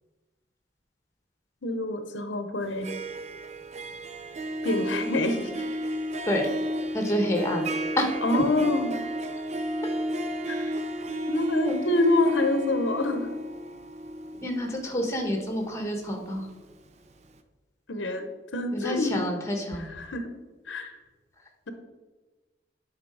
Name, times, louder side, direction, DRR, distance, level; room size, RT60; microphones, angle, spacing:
voice 1, 1.6-2.9 4.6-5.6 8.2-9.0 10.5-10.7 11.3-13.4 17.9-19.1 19.8-20.3 20.7-21.0, left 2 dB, 90° left, 8 dB, 0.8 m, -27 dB
Harp, 2.6-16.6, equal, 35° right, 0.5 m, -33 dB
voice 2, 6.9-7.6 8.0-8.1 8.3-8.4 11.6-11.8 14.4-16.5 18.7-19.9, equal, 15° left, 3 dB, 1.1 m, -28 dB
8.8 x 4.0 x 4.8 m, 1.2 s
head